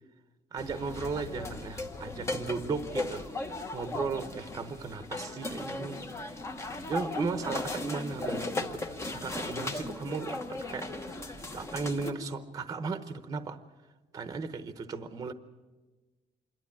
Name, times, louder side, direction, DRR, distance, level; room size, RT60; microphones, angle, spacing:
voice 1, 0.5-6.0 6.9-10.9 11.5-13.6 14.1-15.3, right 4 dB, 25° right, 10 dB, 0.9 m, -36 dB
sound 1, 0.6-12.1, left 2 dB, 20° left, 1.1 m, -37 dB
27.0 x 12.0 x 8.7 m, 1.2 s
cardioid pair, 180°, 15 cm